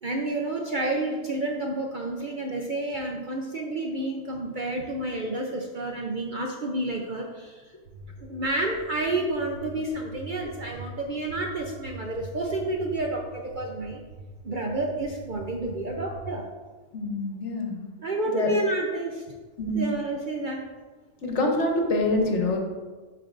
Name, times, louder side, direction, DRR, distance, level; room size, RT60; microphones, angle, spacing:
voice 1, 0.0-7.7 8.2-14.0 14.4-16.5 18.0-19.2 19.7-20.6, right 2 dB, 50° right, 0 dB, 0.6 m, -30 dB
sound 1, 7.8-16.2, right 2 dB, 25° right, 2.2 m, -45 dB
voice 2, 16.9-17.9 18.2-18.5 19.6-19.9 21.2-22.6, left 2 dB, 60° left, 2 dB, 1.2 m, -26 dB
11.5 x 4.4 x 2.5 m, 1.4 s
omnidirectional pair, 1.4 m